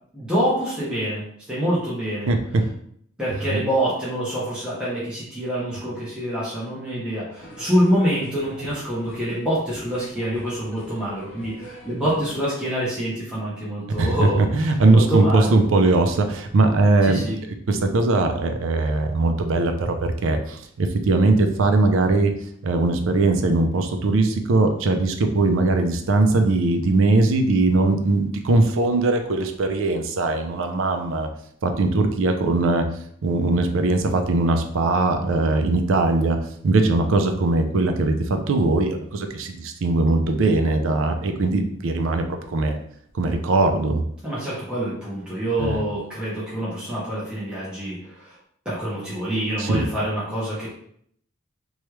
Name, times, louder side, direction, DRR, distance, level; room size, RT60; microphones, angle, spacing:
voice 1, 0.1-2.3 3.2-14.5 14.9-15.5 17.1-17.4 44.2-48.4 48.6-50.7, equal, 5° right, -10 dB, 0.7 m, -26 dB
voice 2, 2.3-2.6 14.0-17.2 17.7-22.3 22.6-31.3 31.6-32.8 33.2-36.4 36.6-42.8 43.1-44.0 45.6-45.8 49.6-49.8, right 2 dB, 70° right, 6 dB, 0.4 m, -20 dB
sound 1, 7.3-12.4, equal, 60° left, 0.7 m, -42 dB
3.1 x 2.3 x 3.0 m, 0.65 s
head